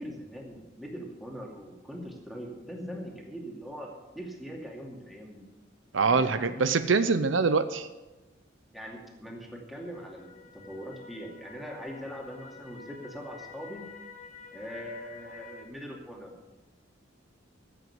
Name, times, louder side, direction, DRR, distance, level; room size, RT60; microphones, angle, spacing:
voice 1, 0.0-5.5 6.0-6.7 8.7-13.9 14.5-16.3, equal, ahead, -1 dB, 2.5 m, -41 dB
voice 2, 5.9-7.9, right 4 dB, 75° right, 11 dB, 0.7 m, -24 dB
sound 1, 9.7-15.6, left 5 dB, 40° left, 1.6 m, -49 dB
14.5 x 7.9 x 8.0 m, 1.1 s
head